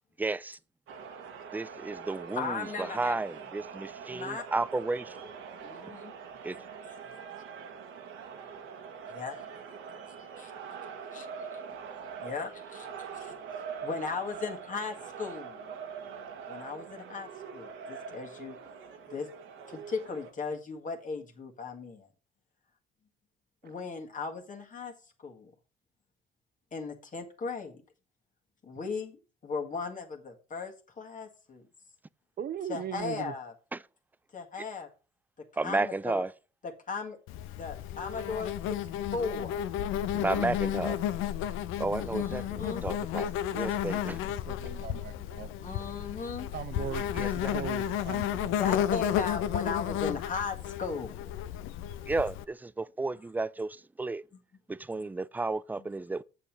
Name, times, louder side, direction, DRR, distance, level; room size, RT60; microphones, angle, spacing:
voice 1, 0.2-0.6 1.5-5.3 6.4-6.6 33.7-33.8 35.6-36.3 40.1-41.0 41.8-44.2 47.1-47.6 52.1-54.2 54.7-56.2, right 3 dB, 10° right, 0.3 m, -33 dB
sound 1, 0.9-20.3, right 6 dB, 75° right, 1.5 m, -43 dB
voice 2, 2.4-3.2 4.1-4.5 5.6-6.1 9.1-9.4 10.1-10.5 11.1-11.6 12.2-12.9 13.2-13.3 13.8-15.7 16.5-18.6 19.1-19.3 19.7-22.1 23.6-24.9 25.2-25.5 26.7-27.8 28.6-31.6 32.7-33.5 34.3-34.9 35.6-36.2 36.6-37.2 37.5-38.5 39.1-39.6 42.0-42.8 45.6-46.5 48.5-51.2, left 4 dB, 40° left, 1.7 m, -37 dB
voice 3, 32.4-33.3 43.9-44.0 44.5-45.8 46.5-47.2 47.5-48.6, right 9 dB, 50° right, 0.8 m, -39 dB
Insect, 37.3-52.4, left 10 dB, 80° left, 0.6 m, -32 dB
7.2 x 6.9 x 4.5 m
supercardioid pair, 80°, 20 cm